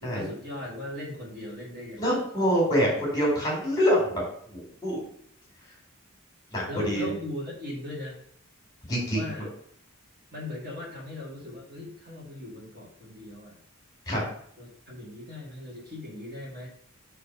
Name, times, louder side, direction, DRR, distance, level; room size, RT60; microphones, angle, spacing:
voice 1, 0.0-2.2 6.7-8.2 9.1-9.5 10.3-13.6 14.6-16.7, left 1 dB, 40° right, -3 dB, 1.8 m, -38 dB
voice 2, 2.0-4.2 4.5-5.0 6.5-7.1 8.9-9.4 14.1-14.2, equal, 15° left, -2 dB, 2.2 m, -25 dB
6.0 x 3.3 x 5.5 m, 0.66 s
head